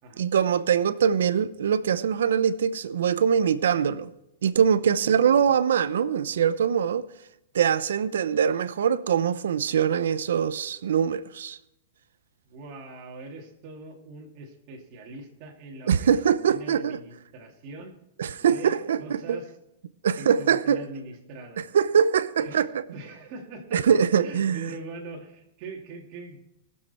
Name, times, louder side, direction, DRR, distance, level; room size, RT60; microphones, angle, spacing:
voice 1, 0.2-4.1 4.4-7.0 7.5-11.6 15.9-17.0 18.2-19.4 20.0-20.8 21.7-22.7 23.7-24.7, right 7 dB, 90° right, 0.7 m, -23 dB
voice 2, 4.9-5.5 12.4-16.2 16.4-17.9 18.4-19.5 20.2-21.7 22.4-22.6 22.9-23.8 24.2-26.4, right 3 dB, 40° right, 2.6 m, -42 dB
18.5 x 7.6 x 4.3 m
supercardioid pair, 155°, 0 cm